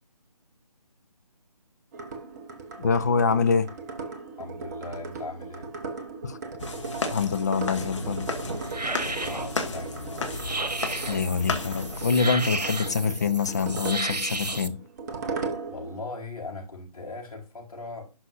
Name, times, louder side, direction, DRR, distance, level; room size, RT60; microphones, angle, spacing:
sound 1, 1.9-16.0, right 4 dB, 25° right, 1.1 m, -38 dB
voice 1, 2.8-3.7 6.2-6.4 7.1-8.3 11.1-14.8, left 5 dB, 25° left, 0.6 m, -25 dB
voice 2, 4.4-5.7 9.0-10.3 15.7-18.1, left 3 dB, 65° left, 4.5 m, -39 dB
sound 2, 6.6-12.1, left 3 dB, 45° left, 2.0 m, -34 dB
sound 3, 7.8-14.7, right 2 dB, 85° right, 1.1 m, -34 dB
11.5 x 5.8 x 2.6 m
figure-of-eight pair, 150°, 20 cm